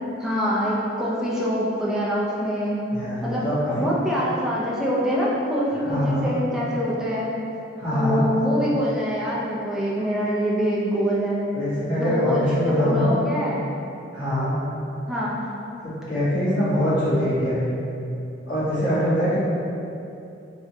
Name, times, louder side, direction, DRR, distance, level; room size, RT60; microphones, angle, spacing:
voice 1, 0.2-2.8 3.2-3.5 3.8-7.4 7.9-13.6 15.1-15.5, equal, 5° right, -7 dB, 0.5 m, -25 dB
voice 2, 2.9-3.9 5.9-6.3 7.8-8.2 11.5-13.1 14.1-14.5 15.8-17.7 18.5-19.4, equal, 75° left, -11 dB, 1.4 m, -23 dB
3.3 x 3.0 x 2.7 m, 2.8 s
head